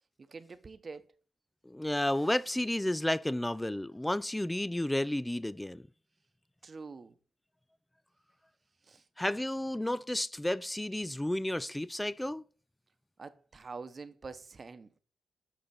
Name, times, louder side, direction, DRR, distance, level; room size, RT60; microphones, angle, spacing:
voice 1, 0.3-1.1 6.6-7.1 8.8-9.0 13.2-14.9, right 4 dB, 45° right, 0.9 m, -45 dB
voice 2, 1.7-5.8 9.2-12.4, left 1 dB, 10° left, 0.4 m, -32 dB
7.6 x 5.2 x 4.2 m
supercardioid pair, 45°, 0 cm